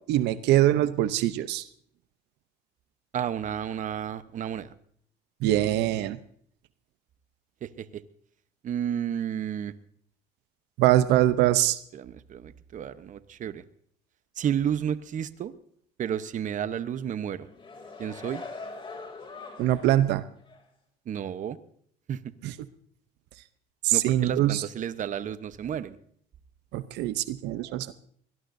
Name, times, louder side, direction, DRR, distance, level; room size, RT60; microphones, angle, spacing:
voice 1, 0.1-1.6 5.4-6.2 10.8-11.8 19.6-20.2 22.4-22.5 23.8-24.6 26.7-27.9, right 14 dB, 85° right, 13 dB, 0.7 m, -23 dB
voice 2, 3.1-4.7 7.6-8.0 8.6-9.7 11.9-13.6 14.4-15.5 16.0-17.5 18.0-18.4 21.1-21.6 22.1-22.2 23.9-26.0, right 9 dB, 50° right, 13 dB, 0.9 m, -31 dB
sound 1, 17.3-20.1 20.5-20.6, left 3 dB, 30° left, 2.9 m, -42 dB
23.0 x 18.5 x 2.7 m, 0.62 s
cardioid pair, 110°, 17 cm